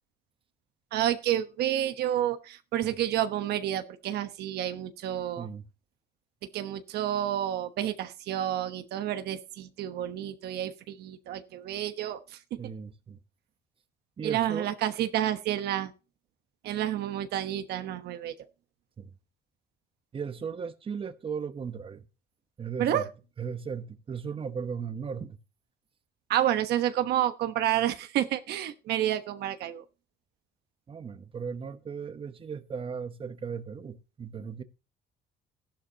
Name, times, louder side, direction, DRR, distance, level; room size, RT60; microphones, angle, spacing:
voice 1, 0.9-5.5 6.5-12.2 14.2-15.9 16.6-18.3 22.8-23.1 26.3-29.8, right 12 dB, 75° right, 1.2 m, -29 dB
voice 2, 5.4-5.7 12.6-13.2 14.2-14.7 19.0-19.1 20.1-22.0 22.6-23.1 23.4-25.4 30.9-34.6, right 6 dB, 30° right, 1.0 m, -36 dB
14.0 x 11.5 x 2.9 m
cardioid pair, 110°, 17 cm